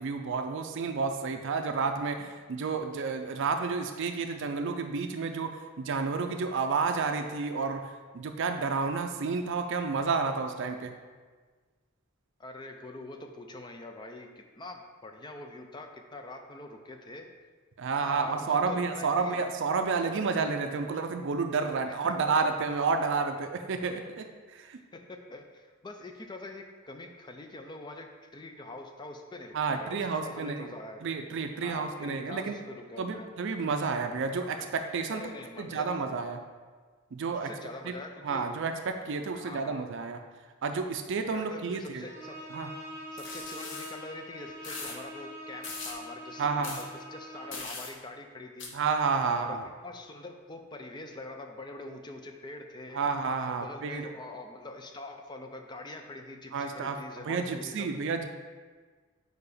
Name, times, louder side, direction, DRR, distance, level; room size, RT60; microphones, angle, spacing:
voice 1, 0.0-10.9 17.8-24.8 29.5-30.7 31.0-32.5 33.0-35.2 35.6-36.4 37.1-37.5 37.8-37.9 38.2-40.2 40.6-42.0 42.5-42.7 46.4-46.8 48.7-49.6 52.9-54.1 56.5-57.0 57.2-58.2, right 4 dB, 60° right, 6 dB, 0.4 m, -30 dB
voice 2, 12.4-17.3 18.0-19.4 21.8-22.3 24.9-31.0 31.6-33.3 35.1-36.2 37.3-38.5 39.3-39.8 41.2-42.5 43.1-48.7 49.3-53.1 53.5-57.9, left 2 dB, 20° left, 4 dB, 0.5 m, -44 dB
Bowed string instrument, 42.0-47.7, equal, 15° right, 1.0 m, -44 dB
sound 1, 43.2-43.9 44.6-45.0 45.6-46.0 46.6-46.8 47.5-47.9 48.6-48.7, left 4 dB, 65° left, 0.9 m, -40 dB
4.8 x 4.6 x 4.9 m, 1.5 s
head